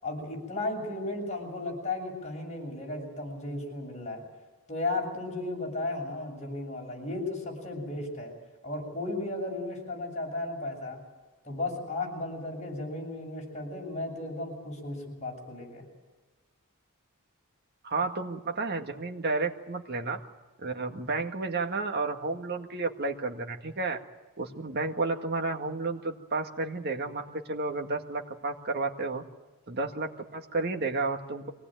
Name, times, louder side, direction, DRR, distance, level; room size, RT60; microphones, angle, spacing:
voice 1, 0.0-4.2 4.7-8.3 8.6-11.0 11.4-15.9, left 2 dB, 30° left, 0 dB, 7.6 m, -35 dB
voice 2, 17.8-20.2 20.6-24.0 24.4-29.2 29.7-31.5, right 3 dB, 45° right, 4 dB, 1.9 m, -31 dB
24.0 x 18.5 x 9.1 m, 1.3 s
head